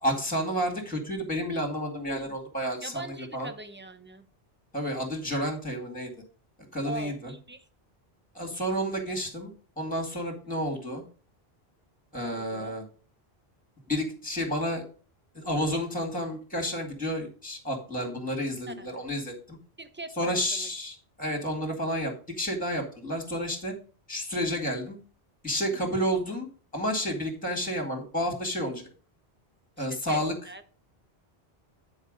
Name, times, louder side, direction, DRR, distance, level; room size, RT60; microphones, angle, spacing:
voice 1, 0.0-3.5 4.7-6.1 6.7-7.3 8.3-9.5 9.8-11.0 12.1-12.8 13.9-14.8 15.3-19.6 20.2-23.7 24.1-25.0 25.4-26.5 26.7-28.9 29.8-30.3, equal, 10° left, 3 dB, 2.1 m, -30 dB
voice 2, 2.1-2.4 2.8-4.3 6.8-7.7 12.2-12.8 18.7-18.9 19.8-20.7 25.7-26.1 29.8-30.2 30.5-30.6, right 2 dB, 10° right, 9 dB, 0.7 m, -41 dB
10.0 x 4.7 x 5.1 m, 0.39 s
omnidirectional pair, 1.1 m